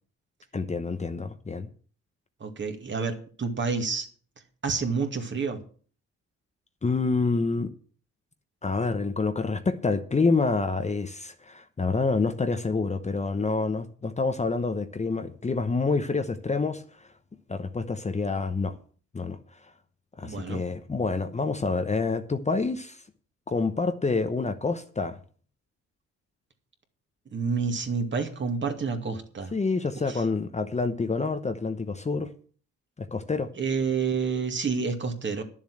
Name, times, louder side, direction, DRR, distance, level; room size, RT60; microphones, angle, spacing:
voice 1, 0.5-1.7 6.8-7.7 8.6-17.1 17.5-18.8 19.1-19.4 20.2-23.0 23.5-25.2 29.5-32.3 33.0-33.5, left 4 dB, 25° left, 0.9 m, -27 dB
voice 2, 2.4-4.1 4.6-5.6 20.2-20.6 27.3-29.5 30.0-30.2 33.6-35.4, right 5 dB, 40° right, 2.3 m, -29 dB
11.0 x 7.3 x 7.8 m
cardioid pair, 90°, 30 cm